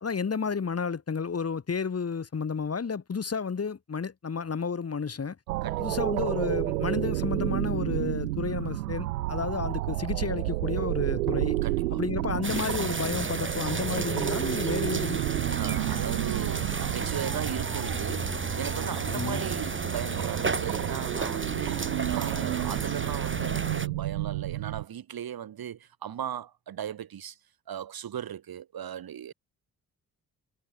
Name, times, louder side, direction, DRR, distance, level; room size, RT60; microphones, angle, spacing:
voice 1, 0.0-5.4 5.8-11.6 11.9-15.2 19.1-19.5, left 5 dB, 35° left, 1.8 m, -31 dB
sound 1, 5.5-24.8, right 18 dB, 85° right, 1.2 m, -31 dB
voice 2, 5.6-6.0 11.6-12.0 15.5-27.4 27.7-29.3, right 9 dB, 50° right, 1.9 m, -37 dB
sound 2, 12.4-23.9, right 3 dB, 25° right, 4.8 m, -33 dB
hypercardioid pair, 40°, 44 cm